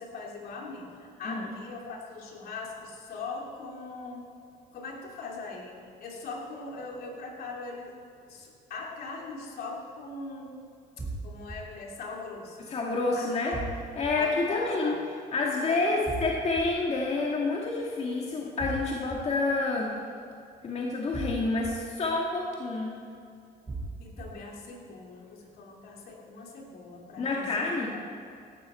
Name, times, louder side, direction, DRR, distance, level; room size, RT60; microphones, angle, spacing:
voice 1, 0.0-4.2 4.7-7.9 8.3-10.5 11.0-12.7 13.1-13.6 14.1-15.0 15.7-16.0 24.0-27.7, left 3 dB, 65° left, -1 dB, 2.9 m, -41 dB
sound 1, 11.0-11.6 13.5-14.1 16.1-16.6 18.6-19.2 21.1-21.7 23.7-24.2, right 3 dB, 20° right, 3.0 m, -36 dB
voice 2, 12.7-13.5 14.0-15.0 15.3-19.9 20.6-22.9 27.2-27.9, left 3 dB, 40° left, -2 dB, 1.8 m, -28 dB
16.5 x 12.5 x 4.4 m, 2.5 s
cardioid pair, 110°, 17 cm